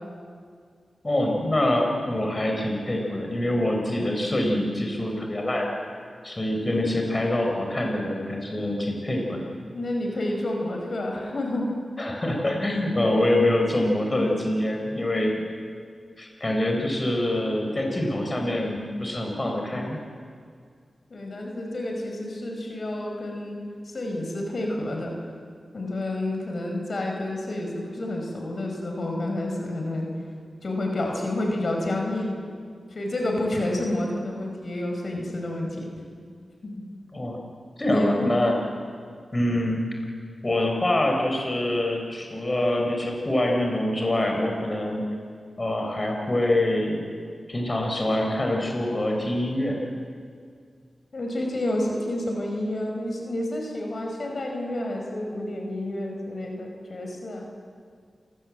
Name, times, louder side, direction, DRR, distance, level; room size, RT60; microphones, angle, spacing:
voice 1, 1.0-5.7 6.2-9.5 12.0-15.4 16.2-20.0 37.1-37.4 37.8-38.6 39.3-39.9 40.4-45.0 45.6-47.0 47.5-49.8, left 1 dB, 30° left, 1 dB, 5.3 m, -25 dB
voice 2, 9.7-11.8 15.0-15.2 21.1-25.2 25.7-30.1 30.6-32.3 32.9-35.9 36.6-36.7 37.9-38.3 51.1-57.5, left 1 dB, 60° left, 1 dB, 5.4 m, -29 dB
28.5 x 18.5 x 7.8 m, 2.1 s
cardioid pair, 60°, 0 cm